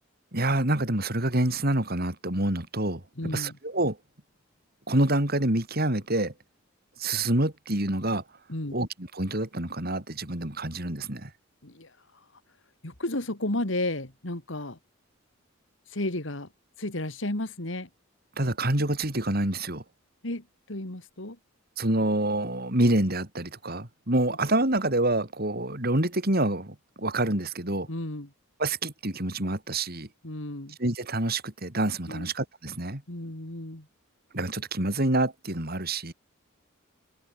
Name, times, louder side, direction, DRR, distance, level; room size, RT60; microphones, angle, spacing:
voice 1, 0.3-3.0 3.3-4.0 4.9-6.3 7.0-8.2 8.7-11.3 18.4-19.8 21.8-27.9 28.6-30.1 30.8-33.0 34.3-36.1, right 1 dB, 50° right, 4.3 m, -27 dB
voice 2, 3.2-3.5 8.5-8.7 11.6-11.9 12.8-14.8 15.9-16.5 16.8-17.9 20.2-21.4 27.9-28.3 30.2-30.8 32.1-32.3 33.1-33.9, left 1 dB, 65° left, 2.8 m, -33 dB
head